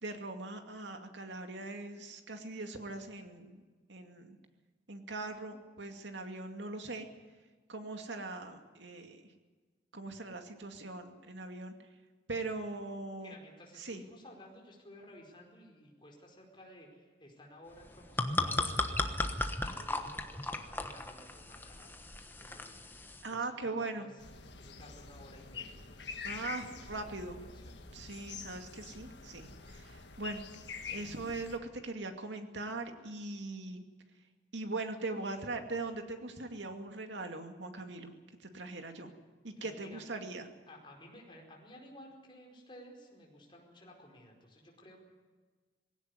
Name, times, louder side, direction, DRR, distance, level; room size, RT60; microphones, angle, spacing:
voice 1, 0.0-3.6 3.9-4.4 4.9-7.1 7.7-9.3 9.9-11.7 12.3-13.4 13.8-14.0 23.2-24.1 26.2-27.4 27.9-30.4 30.9-33.8 34.5-38.1 38.4-39.1 39.4-40.5, right 2 dB, 80° right, 5 dB, 2.4 m, -41 dB
voice 2, 13.2-21.9 22.4-22.8 23.3-24.1 24.6-27.8 39.6-40.0 40.7-45.0, left 1 dB, 25° left, 0 dB, 4.8 m, -55 dB
sound 1, 17.8-23.3, left 2 dB, 10° left, 1.1 m, -36 dB
sound 2, 24.2-31.6, left 5 dB, 70° left, 1.6 m, -46 dB
19.5 x 17.0 x 9.7 m, 1.4 s
head